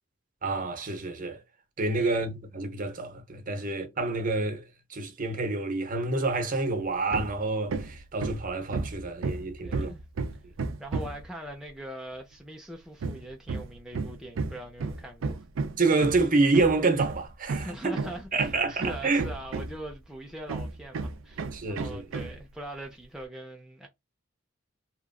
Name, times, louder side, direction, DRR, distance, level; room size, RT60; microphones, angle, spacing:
voice 1, 0.4-1.4 1.8-9.9 15.8-17.9 18.3-19.2 21.5-22.0, right 3 dB, 45° right, 0.8 m, -28 dB
Hammer, 7.1-7.4 7.7-11.3 13.0-19.9 20.5-22.4, right 3 dB, 70° right, 0.4 m, -33 dB
voice 2, 9.6-10.0 10.8-15.4 17.6-23.9, right 1 dB, 5° right, 0.5 m, -42 dB
2.9 x 2.4 x 2.2 m
head